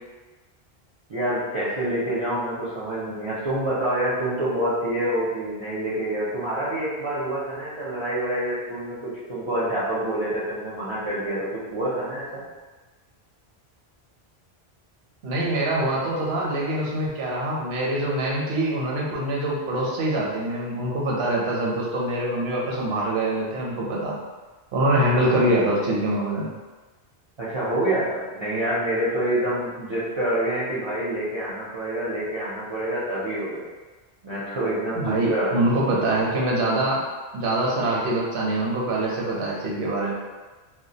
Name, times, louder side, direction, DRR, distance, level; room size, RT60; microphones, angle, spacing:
voice 1, 1.1-12.4 27.4-33.6 34.2-35.7, right 1 dB, 40° right, -10 dB, 0.4 m, -27 dB
voice 2, 15.2-24.2 24.7-26.5 34.9-37.0 37.3-40.1, right 1 dB, 80° right, -4 dB, 0.9 m, -24 dB
2.3 x 2.1 x 2.7 m, 1.3 s
omnidirectional pair, 1.1 m